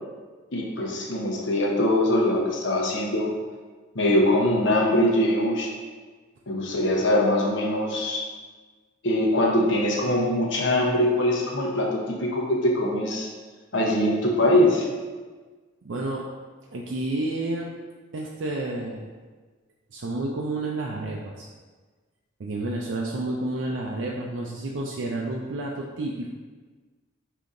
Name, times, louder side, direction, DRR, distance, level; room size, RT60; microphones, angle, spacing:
voice 1, 0.5-3.3 3.9-5.7 6.5-8.2 9.0-13.3 13.7-14.9, left 1 dB, 65° left, -1 dB, 0.8 m, -22 dB
voice 2, 15.8-16.3 16.7-17.7 18.1-19.1 19.9-21.5 22.4-26.3, right 2 dB, 65° right, -2 dB, 0.4 m, -30 dB
5.2 x 2.8 x 3.6 m, 1.4 s
head